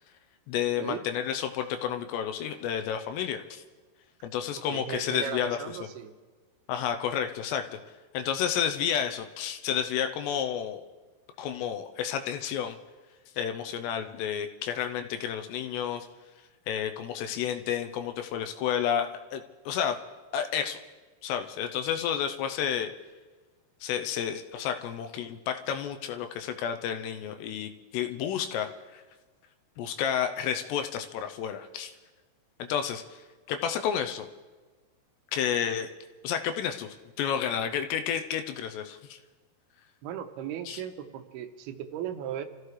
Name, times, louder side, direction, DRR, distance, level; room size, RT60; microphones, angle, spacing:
voice 1, 0.5-3.6 4.2-5.6 6.7-7.7 8.1-10.8 11.4-12.8 13.4-16.1 16.7-20.0 20.3-20.8 21.2-22.9 23.8-29.0 29.8-31.9 32.6-33.2 33.5-34.3 35.3-35.9 36.2-36.9 37.2-39.2 40.7-40.8, left 9 dB, 85° left, 7 dB, 2.8 m, -31 dB
voice 2, 4.7-6.1 40.0-42.4, right 10 dB, 75° right, 7 dB, 2.7 m, -37 dB
28.5 x 14.5 x 3.3 m, 1.3 s
omnidirectional pair, 5.0 m